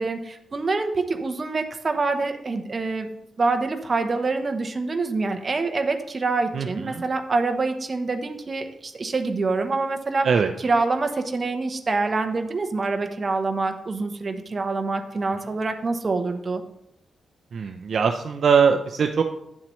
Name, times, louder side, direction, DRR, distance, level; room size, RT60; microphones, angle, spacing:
voice 1, 0.0-3.1 3.4-10.3 10.6-16.6, right 3 dB, 30° right, 6 dB, 0.8 m, -26 dB
voice 2, 6.5-7.0 10.2-10.5 17.5-19.2, right 6 dB, 50° right, 5 dB, 0.5 m, -21 dB
10.0 x 7.3 x 3.1 m, 0.82 s
wide cardioid pair, 145°, 0 cm